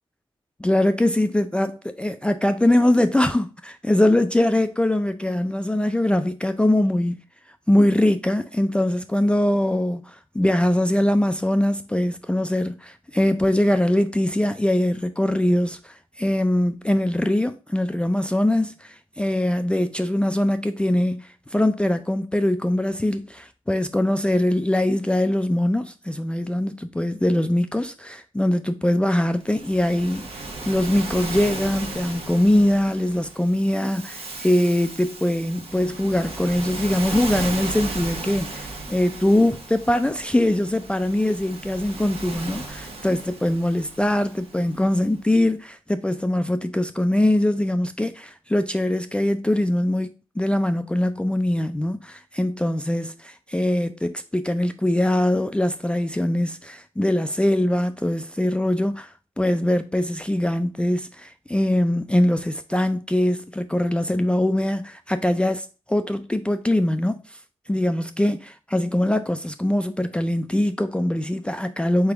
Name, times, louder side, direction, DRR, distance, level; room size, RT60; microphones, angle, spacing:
voice 1, 0.6-7.2 7.7-67.4 67.7-72.1, left 1 dB, 10° left, 0.3 m, -22 dB
Waves surf, 29.4-44.9, right 2 dB, 70° right, 1.1 m, -35 dB
3.8 x 3.4 x 3.5 m
cardioid pair, 65°, 10 cm